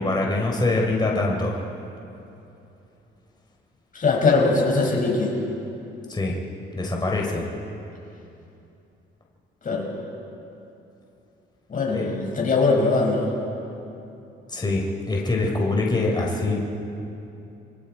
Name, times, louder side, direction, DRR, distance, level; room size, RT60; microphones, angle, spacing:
voice 1, 0.0-1.6 6.1-6.3 6.8-7.5 11.9-12.1 14.5-16.6, left 2 dB, 20° left, -1 dB, 3.8 m, -24 dB
voice 2, 3.9-5.4 9.6-9.9 11.7-13.3, left 3 dB, 40° left, -1 dB, 6.0 m, -21 dB
29.0 x 23.5 x 4.6 m, 2.8 s
cardioid pair, 90°, 20 cm